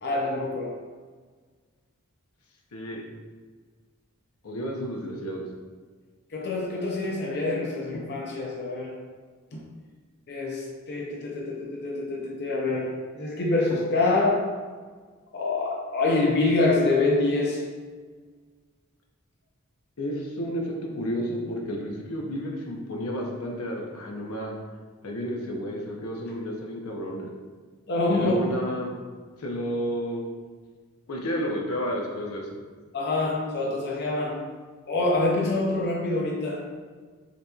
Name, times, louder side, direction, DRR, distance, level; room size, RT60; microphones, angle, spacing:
voice 1, 0.0-0.8 6.3-9.0 9.5-9.6 10.3-14.6 15.3-17.7 27.9-28.5 32.9-34.5 34.9-36.7, left 2 dB, 50° left, -2 dB, 0.6 m, -26 dB
voice 2, 2.7-3.0 4.4-5.4 20.0-24.5 25.0-27.3 28.1-28.9 29.4-30.3 31.1-32.5, equal, 80° left, 0 dB, 0.8 m, -31 dB
6.5 x 2.9 x 2.3 m, 1.5 s
head